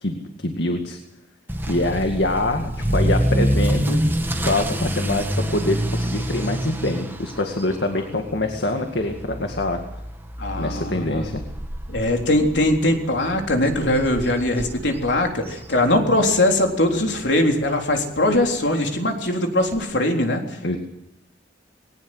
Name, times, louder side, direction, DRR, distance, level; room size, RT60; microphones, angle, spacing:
voice 1, 0.0-1.0 1.6-4.0 4.4-9.8 10.6-11.4 20.6-20.8, left 2 dB, 70° left, 5 dB, 2.1 m, -25 dB
Motor vehicle (road) / Accelerating revving vroom, 1.5-16.3 16.6-17.0 17.5-17.6 17.9-18.0 18.3-18.4 19.7-19.8, equal, 10° right, 2.3 m, -27 dB
voice 2, 10.4-11.2 11.9-20.6, left 1 dB, 85° left, 3 dB, 3.7 m, -21 dB
20.5 x 18.5 x 8.0 m, 0.83 s
head